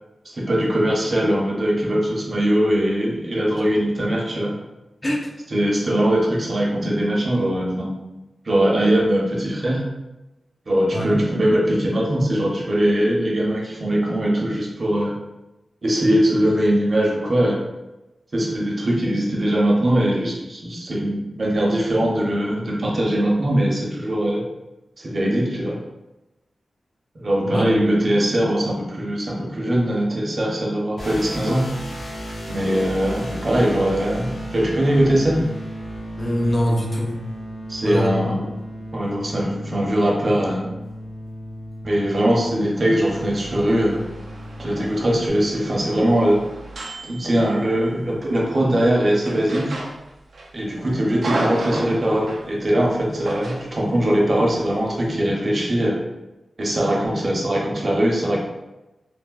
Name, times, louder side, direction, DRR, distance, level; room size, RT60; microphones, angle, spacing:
voice 1, 0.3-4.5 5.5-7.9 8.4-9.8 10.7-15.1 15.8-17.6 18.3-24.4 25.0-25.8 27.1-31.6 32.5-35.4 37.7-38.4 38.9-40.6 41.8-44.0 44.6-46.4 47.0-49.7 50.5-56.0 56.6-58.4, right 1 dB, 45° right, -3 dB, 0.7 m, -21 dB
voice 2, 27.4-27.7 36.2-37.2 37.8-38.5, equal, 30° left, -1 dB, 0.6 m, -23 dB
sound 1, 31.0-45.3, equal, 75° left, 0.8 m, -34 dB
sound 2, 43.0-48.0 49.2-50.5 50.8-52.5 53.3-53.8, right 1 dB, 80° right, 0.4 m, -32 dB
3.3 x 2.1 x 2.3 m, 1.0 s
wide cardioid pair, 90°, 0 cm